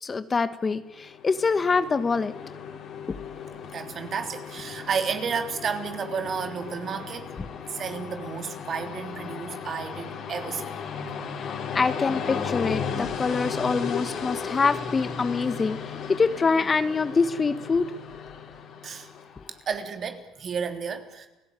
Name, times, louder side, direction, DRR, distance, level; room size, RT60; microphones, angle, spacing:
voice 1, 0.0-2.3 11.7-15.8 16.1-17.9, left 4 dB, 30° left, 12 dB, 1.3 m, -25 dB
Train, 0.9-19.6, left 6 dB, 60° left, 5.6 m, -36 dB
voice 2, 3.7-7.3 7.7-10.8 18.8-19.1 19.7-21.3, right 6 dB, 45° right, 7 dB, 3.4 m, -32 dB
29.5 x 17.0 x 9.0 m, 1.0 s
supercardioid pair, 90°, 0 cm